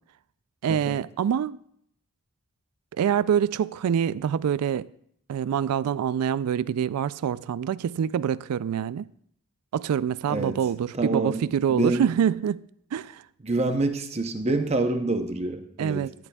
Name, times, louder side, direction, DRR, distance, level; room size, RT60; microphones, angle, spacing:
voice 1, 0.6-1.6 3.0-4.9 5.3-9.1 9.7-12.6 12.9-13.2 15.8-16.1, right 8 dB, 85° right, 0.3 m, -25 dB
voice 2, 10.9-11.4 11.7-12.1 13.4-16.0, right 2 dB, 30° right, 0.6 m, -26 dB
13.0 x 11.0 x 2.3 m
head